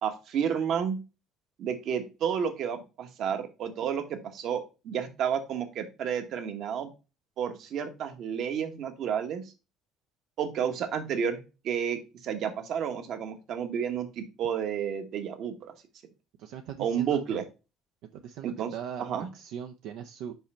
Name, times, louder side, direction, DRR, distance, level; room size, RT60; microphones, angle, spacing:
voice 1, 0.0-1.0 1.6-6.9 7.4-9.4 10.4-11.4 11.6-15.7 16.8-17.4 18.4-18.7 19.0-19.3, right 8 dB, 50° right, 7 dB, 1.2 m, -31 dB
voice 2, 16.4-17.4 18.1-20.4, right 9 dB, 70° right, 5 dB, 0.6 m, -40 dB
5.5 x 5.1 x 4.2 m, 0.30 s
cardioid pair, 155°, 0 cm